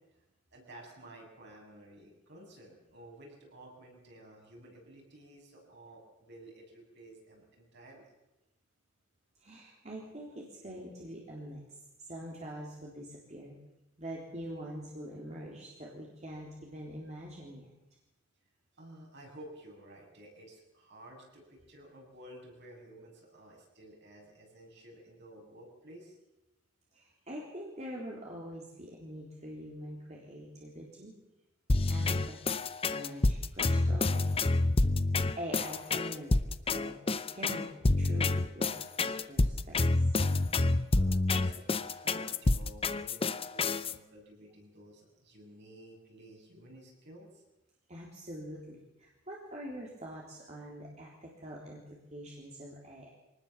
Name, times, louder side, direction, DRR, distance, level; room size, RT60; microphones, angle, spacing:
voice 1, 0.5-8.1 18.8-26.2 40.9-47.4, right 1 dB, 55° right, -1 dB, 8.0 m, -53 dB
voice 2, 9.4-13.6 14.0-17.7 26.9-31.1 31.9-32.6 32.9-34.6 35.4-37.7 38.0-40.1 47.9-53.1, equal, 35° right, -3 dB, 3.7 m, -44 dB
sound 1, 31.7-43.9, left 2 dB, 25° left, 0.7 m, -28 dB
24.5 x 19.0 x 7.4 m, 0.97 s
head